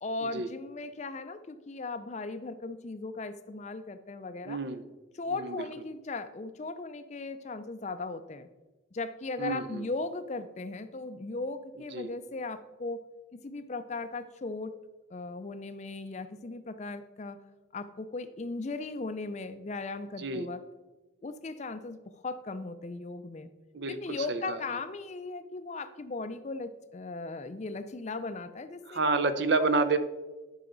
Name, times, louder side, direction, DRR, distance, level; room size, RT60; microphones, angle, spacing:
voice 1, 0.0-4.6 5.1-8.5 8.9-14.7 15.1-17.4 17.7-20.6 21.2-22.0 22.2-23.5 23.9-29.2, left 3 dB, 35° left, 11 dB, 0.4 m, -37 dB
voice 2, 4.5-4.8 5.3-5.6 9.4-9.8 11.9-12.1 20.2-20.5 23.7-24.6 28.9-30.0, right 3 dB, 60° right, 11 dB, 0.6 m, -29 dB
11.0 x 5.6 x 3.9 m, 1.1 s
head